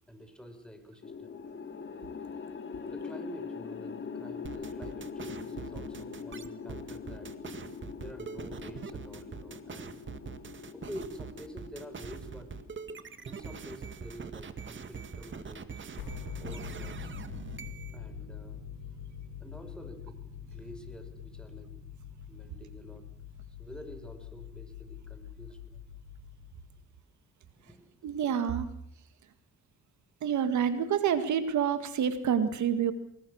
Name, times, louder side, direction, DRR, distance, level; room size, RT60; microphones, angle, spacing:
voice 1, 0.1-1.4 2.9-7.3 7.6-7.7 8.0-10.0 10.7-12.5 13.2-15.8 16.4-17.1 17.9-18.7 19.4-21.8 22.3-23.1 23.6-25.8 27.4-28.1, equal, 5° left, 6 dB, 5.6 m, -48 dB
sound 1, 1.0-13.3, left 5 dB, 40° left, 2.8 m, -43 dB
sound 2, 4.4-18.0, right 5 dB, 40° right, 2.1 m, -43 dB
sound 3, 16.0-26.9, left 8 dB, 90° left, 4.6 m, -44 dB
voice 2, 28.0-28.7 30.2-32.9, right 8 dB, 70° right, 10 dB, 2.1 m, -28 dB
24.5 x 21.5 x 6.6 m, 0.69 s
cardioid pair, 90°, 30 cm